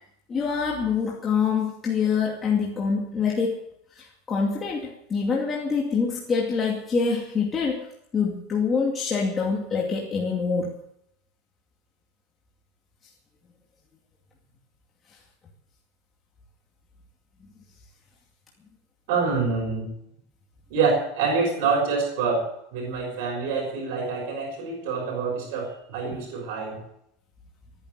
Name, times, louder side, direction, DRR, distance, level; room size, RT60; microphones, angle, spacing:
voice 1, 0.3-3.6 3.9-7.8 8.1-10.8, left 5 dB, 20° left, -2 dB, 2.4 m, -25 dB
voice 2, 19.1-19.9 20.7-26.8, right 4 dB, 70° right, 1 dB, 5.9 m, -26 dB
14.5 x 10.5 x 9.4 m, 0.76 s
supercardioid pair, 145°, 0 cm